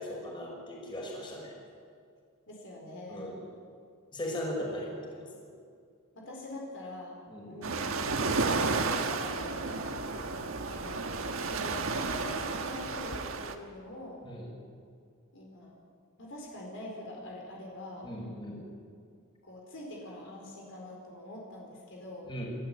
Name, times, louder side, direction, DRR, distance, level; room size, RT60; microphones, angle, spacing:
voice 1, 0.0-1.5 3.1-3.4 4.1-5.4 7.3-7.5 14.2-14.5 18.0-18.6 22.3-22.4, left 1 dB, 20° left, -2 dB, 5.9 m, -38 dB
voice 2, 2.5-3.4 6.1-7.2 7.5-7.9 8.2-10.0 10.4-10.5 10.8-14.3 15.3-15.7 16.2-18.1 19.4-22.3, left 1 dB, 60° left, -1 dB, 4.6 m, -44 dB
sound 1, 7.6-13.5, right 3 dB, 65° right, 1.5 m, -32 dB
29.5 x 13.0 x 9.1 m, 2.3 s
head